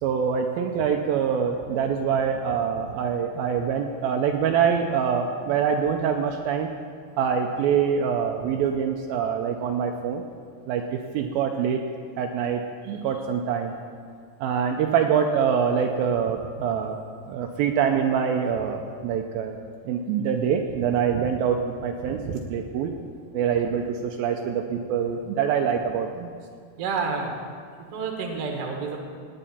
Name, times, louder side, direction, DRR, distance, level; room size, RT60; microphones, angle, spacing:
voice 1, 0.0-6.7 7.2-10.2 10.7-11.8 12.2-13.7 14.4-17.0 17.3-19.6 19.9-22.9 23.3-26.4, right 7 dB, 85° right, 3 dB, 2.2 m, -25 dB
voice 2, 26.8-27.4 27.9-29.0, right 5 dB, 55° right, 1 dB, 1.8 m, -29 dB
18.0 x 10.0 x 4.3 m, 2.1 s
omnidirectional pair, 4.8 m